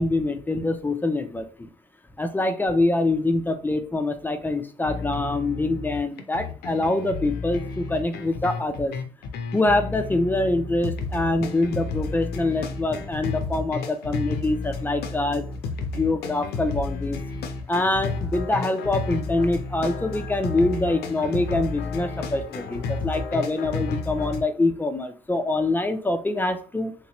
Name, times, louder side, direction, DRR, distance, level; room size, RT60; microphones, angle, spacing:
voice 1, 0.0-1.7 2.2-8.9 9.5-15.4 15.9-17.2 17.7-26.9, left 2 dB, 10° left, 7 dB, 0.4 m, -25 dB
sound 1, 4.8-24.4, left 4 dB, 70° left, 0.6 m, -32 dB
3.2 x 2.9 x 2.9 m, 0.42 s
cardioid pair, 110°, 17 cm